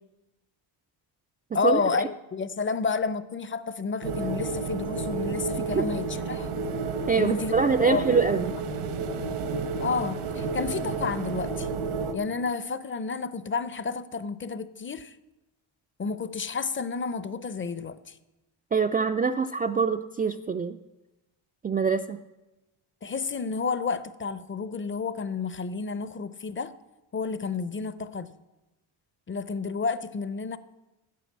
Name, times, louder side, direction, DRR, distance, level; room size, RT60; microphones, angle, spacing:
voice 1, 1.5-6.5 7.2-7.5 7.9-8.5 9.8-11.7 12.1-15.2 16.0-18.2 23.0-26.7 27.1-28.3 29.3-30.6, left 4 dB, 25° left, 0.6 m, -30 dB
sound 1, 4.0-12.1, right 4 dB, 80° right, 1.3 m, -31 dB
voice 2, 7.1-8.5 18.7-20.8 21.6-22.2, right 5 dB, 20° right, 0.3 m, -24 dB
9.3 x 8.5 x 7.3 m
cardioid pair, 95°, 49 cm